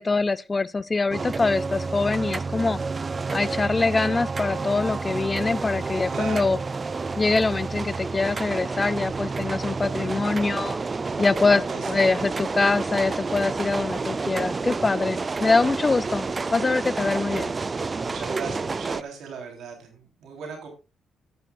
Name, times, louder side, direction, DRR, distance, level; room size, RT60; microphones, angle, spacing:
voice 1, 0.0-2.8 3.3-6.6 7.2-10.8 11.2-17.5, left 3 dB, 25° left, 0.5 m, -24 dB
sound 1, 1.1-19.0, right 4 dB, 30° right, 0.5 m, -30 dB
voice 2, 6.1-6.6 11.7-12.0 18.0-20.7, right 5 dB, 75° right, 3.3 m, -37 dB
13.5 x 10.5 x 2.4 m
cardioid pair, 90°, 0 cm